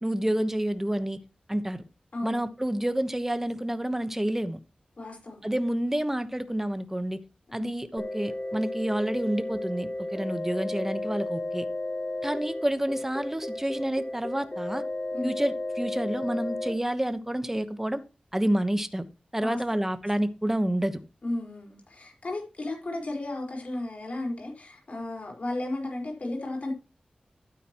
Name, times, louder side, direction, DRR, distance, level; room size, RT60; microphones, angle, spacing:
voice 1, 0.0-1.2 1.5-1.8 2.2-4.6 5.4-7.2 7.5-11.6 12.2-14.8 15.2-18.0 18.3-19.0 19.3-21.0, right 1 dB, 15° right, 1.1 m, -29 dB
voice 2, 2.1-2.5 5.0-5.4 7.6-7.7 15.1-15.3 19.4-19.8 21.2-26.7, left 2 dB, 60° left, 4.6 m, -34 dB
sound 1, 8.0-16.7, left 1 dB, 30° left, 3.8 m, -33 dB
12.0 x 9.1 x 3.0 m
cardioid pair, 50°, 3 cm